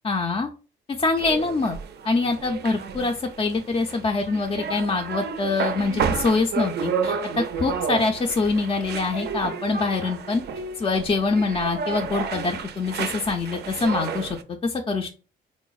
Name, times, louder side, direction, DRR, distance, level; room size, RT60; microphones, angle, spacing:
voice 1, 0.0-0.5 1.0-1.8 2.0-7.2 7.6-10.4 10.8-14.4 14.6-15.1, left 3 dB, 25° left, 2 dB, 0.3 m, -24 dB
sound 1, 1.2-14.4, right 6 dB, 55° right, 0.4 m, -31 dB
3.8 x 2.0 x 2.3 m, 0.35 s
cardioid pair, 90°, 20 cm